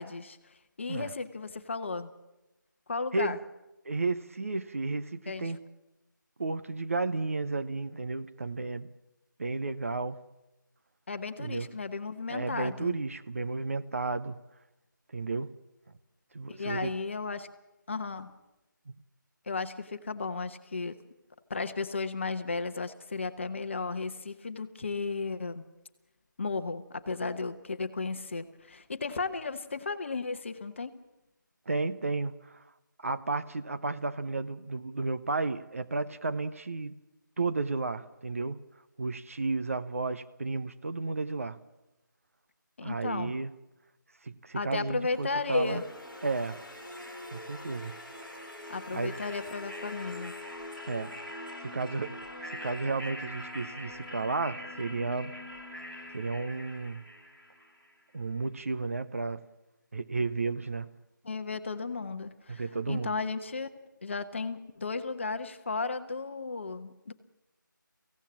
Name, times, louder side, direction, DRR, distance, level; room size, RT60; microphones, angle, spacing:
voice 1, 0.0-2.1 2.9-3.4 5.3-5.5 11.1-13.0 16.5-17.5 17.9-18.3 19.5-21.0 21.5-25.6 26.4-31.0 42.8-43.3 44.5-45.8 48.7-50.3 61.2-63.7 64.0-67.1, left 4 dB, 35° left, 1.1 m, -34 dB
voice 2, 3.8-5.6 6.4-8.9 9.4-10.2 11.4-11.7 12.3-14.4 15.1-15.5 16.3-16.9 18.9-19.0 31.7-32.6 33.0-37.0 37.4-38.6 39.0-41.6 42.8-43.5 44.2-45.8 46.2-46.6 47.3-48.0 48.9-49.1 50.9-51.1 51.6-52.2 52.5-55.3 56.1-57.0 58.1-59.4 59.9-60.9 62.5-63.1, right 3 dB, 40° right, 0.8 m, -33 dB
sound 1, 45.1-58.0, left 1 dB, 5° right, 1.3 m, -43 dB
24.5 x 16.5 x 7.5 m
figure-of-eight pair, 165°, 11 cm